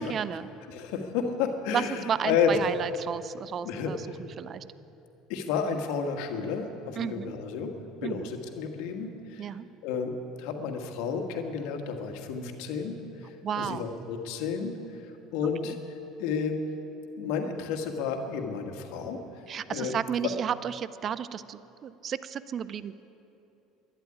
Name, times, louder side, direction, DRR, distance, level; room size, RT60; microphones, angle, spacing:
voice 1, 0.0-0.5 1.7-4.0 4.4-4.6 7.0-7.3 8.0-8.3 9.4-9.7 13.4-13.9 15.6-15.8 19.5-22.9, right 8 dB, 45° right, 16 dB, 0.5 m, -32 dB
voice 2, 0.7-2.7 3.6-4.2 5.3-7.7 8.0-9.5 9.8-10.1 10.4-15.0 15.3-15.8 16.2-16.6 17.2-19.4 19.7-19.9, left 6 dB, 75° left, 4 dB, 1.6 m, -31 dB
12.0 x 11.0 x 9.9 m, 2.9 s
hypercardioid pair, 80°, 0 cm